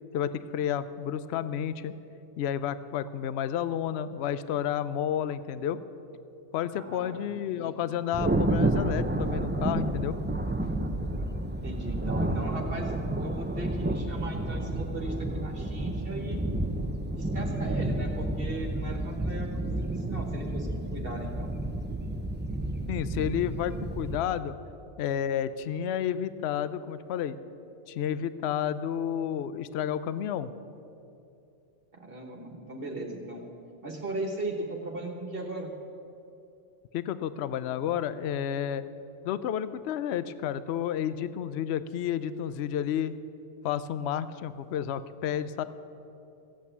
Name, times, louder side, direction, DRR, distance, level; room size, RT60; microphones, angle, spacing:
voice 1, 0.1-1.9 2.4-5.8 6.5-10.2 22.9-24.6 25.0-27.4 27.9-30.5 36.9-38.8 39.2-43.1 43.6-45.6, left 9 dB, 70° left, 14 dB, 0.8 m, -31 dB
voice 2, 6.7-7.8 11.6-16.4 17.1-21.5 31.9-33.4 33.8-35.7, right 2 dB, 50° right, 2 dB, 1.6 m, -38 dB
Thunder, 8.1-24.2, right 1 dB, 15° right, 0.3 m, -30 dB
15.5 x 8.5 x 8.1 m, 2.8 s
omnidirectional pair, 1.2 m